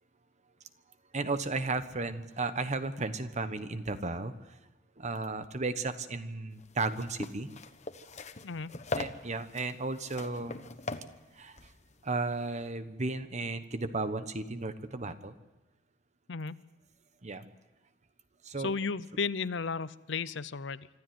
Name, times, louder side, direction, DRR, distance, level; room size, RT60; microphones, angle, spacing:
voice 1, 1.1-4.3 5.0-7.5 8.9-10.7 11.4-11.7 12.0-15.3 17.2-17.4 18.4-18.7, right 3 dB, 40° right, 11 dB, 1.2 m, -34 dB
sound 1, 6.6-12.6, left 3 dB, 40° left, 1.2 m, -41 dB
voice 2, 8.4-8.8 16.3-16.6 18.6-20.9, left 4 dB, 70° left, 16 dB, 0.7 m, -34 dB
26.0 x 13.0 x 9.4 m, 1.1 s
head